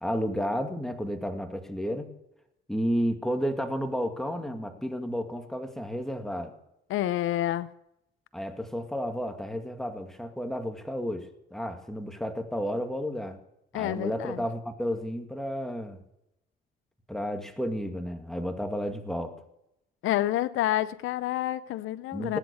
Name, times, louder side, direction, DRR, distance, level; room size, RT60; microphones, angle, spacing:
voice 1, 0.0-2.1 2.7-6.5 8.3-13.4 13.7-16.0 17.1-19.4 22.1-22.4, equal, ahead, 2.3 m, -32 dB
voice 2, 6.9-7.7 13.7-14.4 20.0-22.4, left 13 dB, 85° left, 0.7 m, -28 dB
19.5 x 9.9 x 7.1 m
cardioid pair, 90°, 20 cm